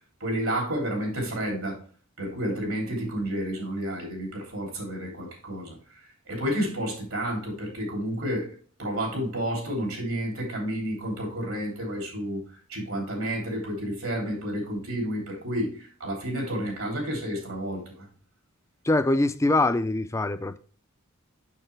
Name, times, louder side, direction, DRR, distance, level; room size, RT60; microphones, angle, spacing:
voice 1, 0.2-1.8 2.2-5.8 6.3-12.4 12.7-18.1, equal, 75° right, 3.3 m, -30 dB
voice 2, 18.8-20.6, left 2 dB, 15° left, 0.4 m, -23 dB
6.6 x 6.6 x 3.2 m
head